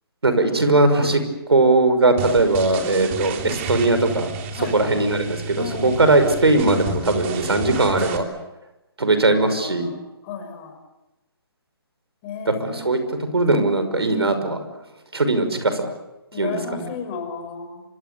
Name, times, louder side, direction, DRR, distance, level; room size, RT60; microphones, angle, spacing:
voice 1, 0.2-1.2 1.5-8.2 9.0-9.9 12.5-13.0 13.3-14.6 15.1-15.9 16.4-16.9, right 2 dB, 85° right, 9 dB, 5.7 m, -19 dB
sound 1, 2.2-8.2, right 3 dB, 30° right, 3.4 m, -31 dB
voice 2, 4.6-5.0 5.6-6.0 9.2-10.0 10.2-10.8 12.2-12.9 16.3-17.8, left 6 dB, 30° left, 6 dB, 5.7 m, -34 dB
28.5 x 26.5 x 7.0 m, 0.98 s
figure-of-eight pair, 145°, 13 cm